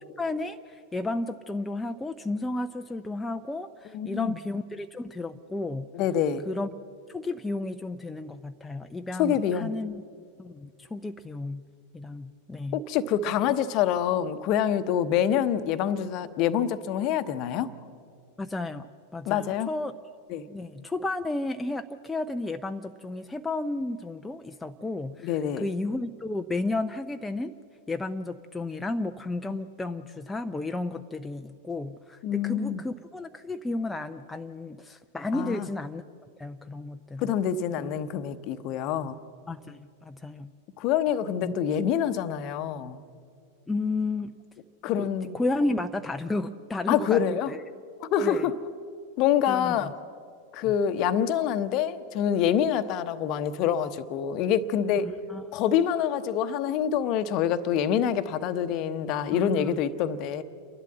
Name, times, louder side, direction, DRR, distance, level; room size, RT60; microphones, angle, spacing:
voice 1, 0.2-5.9 6.5-6.7 7.1-10.0 10.4-11.6 11.9-12.8 18.4-18.9 19.1-19.9 20.5-27.5 27.9-36.0 36.4-37.3 37.8-37.9 39.5-40.5 41.4-41.6 43.7-44.3 45.0-47.2 47.5-47.6 48.2-48.4 49.5-49.9 50.6-50.7 55.3-55.4 59.3-59.8, left 2 dB, 10° left, 6 dB, 0.5 m, -32 dB
voice 2, 3.9-4.4 5.9-6.4 9.2-9.7 12.7-17.7 19.3-19.7 20.3-20.4 25.2-25.6 32.2-32.8 35.3-35.7 37.2-39.2 40.8-43.0 44.8-45.3 46.9-47.5 48.0-48.5 49.2-49.9 50.5-55.2 55.5-60.4, left 9 dB, 40° left, 12 dB, 0.9 m, -26 dB
29.5 x 11.5 x 7.6 m, 2.3 s
figure-of-eight pair, 90°, 0 cm